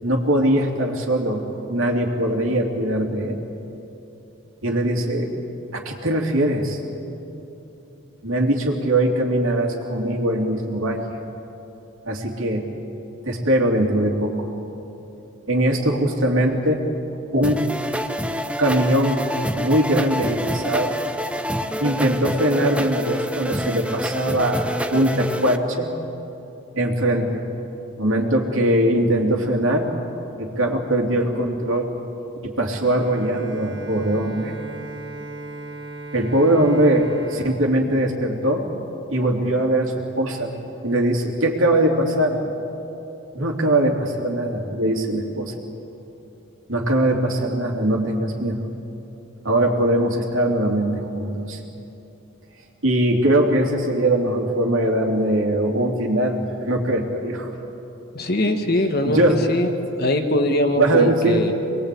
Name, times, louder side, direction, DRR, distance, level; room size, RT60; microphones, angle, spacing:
voice 1, 0.0-3.4 4.6-5.3 5.7-6.8 8.2-11.0 12.0-12.7 13.2-14.5 15.5-16.8 17.3-17.6 18.6-21.0 21.8-25.9 26.7-27.4 28.0-29.9 30.4-32.0 32.4-34.5 36.1-38.7 39.1-40.6 40.8-42.5 43.3-45.5 46.7-48.6 49.4-51.6 52.8-57.5 59.1-59.5 60.7-61.5, right 1 dB, 75° right, 2 dB, 3.0 m, -21 dB
sound 1, 17.4-25.6, equal, 5° right, 0.7 m, -27 dB
Bowed string instrument, 32.8-38.8, right 3 dB, 55° right, 2.1 m, -38 dB
voice 2, 58.1-59.7 60.0-61.5, left 1 dB, 45° left, 5 dB, 1.6 m, -21 dB
26.0 x 21.0 x 8.5 m, 2.9 s
head